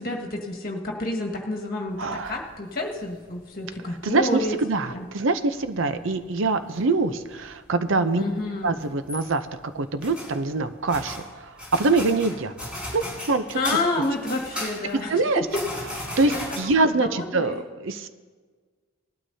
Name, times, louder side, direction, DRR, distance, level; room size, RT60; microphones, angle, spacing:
voice 1, 0.0-4.6 4.9-5.1 8.1-8.7 13.5-15.6 16.3-16.4 16.8-17.6, left 2 dB, 45° left, -1 dB, 1.7 m, -29 dB
sound 1, 1.9-3.7 4.0-5.1 5.4-7.6 7.9-15.1 15.4-16.6, left 1 dB, 5° right, 4.5 m, -36 dB
voice 2, 2.0-2.3 4.0-8.2 8.6-9.5 9.7-12.5 12.9-13.6 15.1-15.5 16.2-18.1, right 3 dB, 60° right, 10 dB, 0.6 m, -24 dB
19.0 x 12.5 x 2.8 m, 1.5 s
head